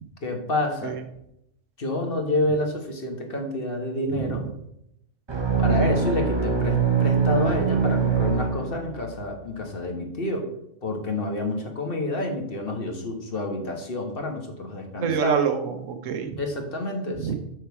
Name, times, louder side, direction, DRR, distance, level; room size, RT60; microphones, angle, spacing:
voice 1, 0.2-1.0 1.8-4.4 5.6-10.4 10.8-15.3 16.4-17.3, left 2 dB, 45° left, 3 dB, 1.5 m, -28 dB
sound 1, 5.3-9.1, right 6 dB, 25° right, 0.8 m, -23 dB
voice 2, 5.5-5.9 15.0-16.4 17.2-17.3, right 7 dB, 75° right, 8 dB, 1.2 m, -27 dB
7.2 x 6.5 x 4.7 m, 0.79 s
omnidirectional pair, 1.3 m